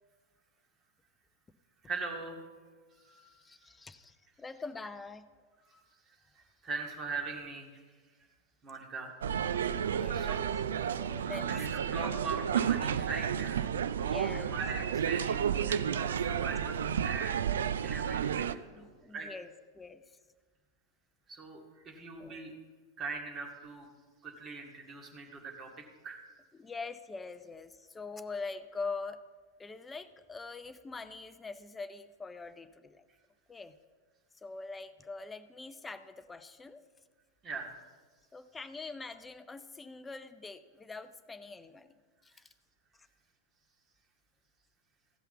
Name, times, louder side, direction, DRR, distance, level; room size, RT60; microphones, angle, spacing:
voice 1, 1.8-2.4 2.9-3.7 5.6-5.8 6.1-7.8 8.6-9.5 10.1-10.5 11.5-13.7 14.3-17.4 17.8-19.3 21.3-22.5 23.0-23.9 24.2-25.7 26.0-26.2 37.4-37.7, right 4 dB, 30° right, 1 dB, 2.1 m, -41 dB
voice 2, 3.4-5.3 9.7-10.5 11.0-11.5 12.0-12.2 14.0-15.0 18.8-19.5 19.7-20.2 22.2-22.6 26.6-29.2 29.6-33.0 33.5-33.7 34.3-36.8 38.3-41.9 42.2-42.5, left 4 dB, 15° left, 12 dB, 0.6 m, -44 dB
sound 1, 9.2-18.5, right 8 dB, 65° right, 0.4 m, -31 dB
15.5 x 5.7 x 7.1 m, 1.5 s
figure-of-eight pair, 90°, 0 cm